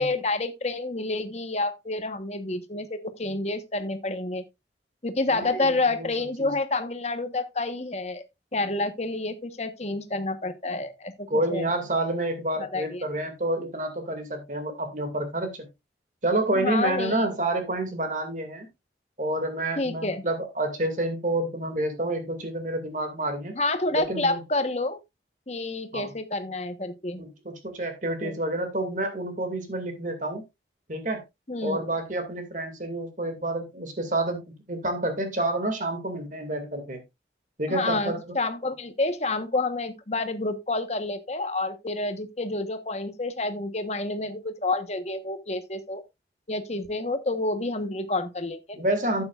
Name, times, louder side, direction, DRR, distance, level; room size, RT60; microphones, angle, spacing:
voice 1, 0.0-4.4 5.0-8.2 8.5-11.7 12.6-13.0 16.5-17.3 19.8-20.2 23.5-25.0 25.5-27.2 28.2-28.3 31.5-31.8 37.7-46.0 46.5-48.8, left 2 dB, 40° left, 1.2 m, -29 dB
voice 2, 5.3-6.1 6.4-6.6 11.3-15.7 16.2-18.7 19.2-23.6 23.9-24.4 25.9-26.1 27.2-30.4 30.9-31.2 31.6-34.4 34.7-37.0 37.6-38.4 48.7-49.2, right 1 dB, 45° right, 2.3 m, -29 dB
12.5 x 8.7 x 2.5 m
head